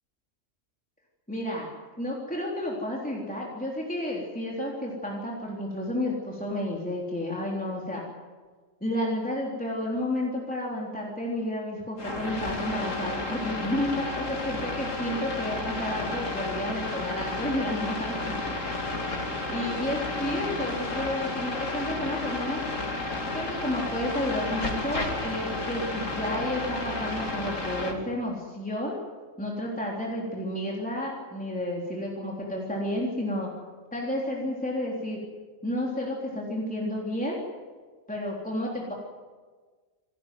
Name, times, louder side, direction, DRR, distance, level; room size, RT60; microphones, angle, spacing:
voice 1, 1.3-1.7 2.0-8.0 8.8-18.1 19.5-22.6 23.3-29.0 29.4-33.5 33.9-35.2 35.6-37.4 38.1-38.9, left 1 dB, 5° left, -3 dB, 3.6 m, -31 dB
sound 1, 12.0-27.9, left 2 dB, 90° left, 3.1 m, -32 dB
27.5 x 13.5 x 9.4 m, 1.4 s
omnidirectional pair, 1.3 m